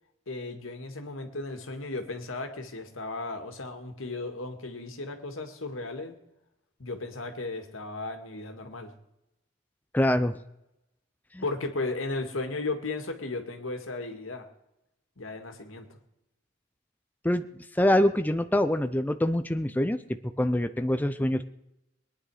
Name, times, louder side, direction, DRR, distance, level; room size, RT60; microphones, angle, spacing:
voice 1, 0.3-6.2 6.8-8.9 11.4-14.5 15.2-16.0, left 3 dB, 85° left, 6 dB, 2.0 m, -35 dB
voice 2, 9.9-10.4 11.3-11.4 17.2-17.5 17.7-20.0 20.4-21.4, left 1 dB, 10° left, 10 dB, 0.5 m, -24 dB
22.0 x 10.0 x 4.9 m, 0.88 s
head